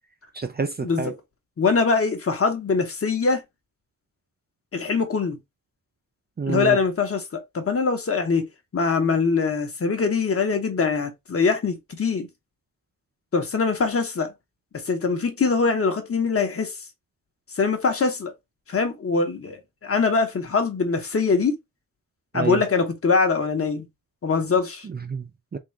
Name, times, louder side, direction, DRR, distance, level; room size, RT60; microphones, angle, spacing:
voice 1, 0.3-1.1 6.4-6.8 22.3-22.6 24.9-25.6, right 5 dB, 30° right, 0.4 m, -28 dB
voice 2, 1.6-3.4 4.7-5.4 6.5-8.5 8.7-12.3 13.3-14.3 14.8-16.7 17.6-18.3 18.7-21.5 22.3-23.9 24.2-24.9, left 4 dB, 45° left, 1.1 m, -23 dB
3.8 x 2.5 x 4.4 m
wide cardioid pair, 145°, 33 cm